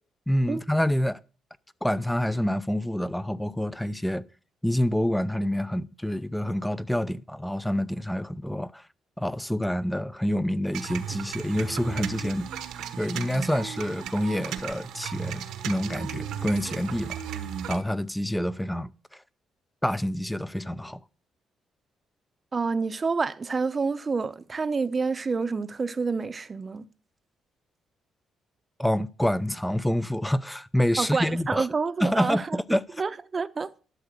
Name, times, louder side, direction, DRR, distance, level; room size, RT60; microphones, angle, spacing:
voice 1, 0.3-1.2 1.8-4.2 4.6-8.8 9.2-12.5 13.0-19.2 19.8-21.0 28.8-31.7 32.0-33.0, equal, 5° left, 0.6 m, -27 dB
sound 1, 10.7-17.8, right 9 dB, 85° right, 1.3 m, -35 dB
voice 2, 22.5-26.9 31.0-32.6 33.0-33.7, right 4 dB, 35° right, 0.8 m, -28 dB
12.0 x 6.7 x 6.7 m
cardioid pair, 90°, 0 cm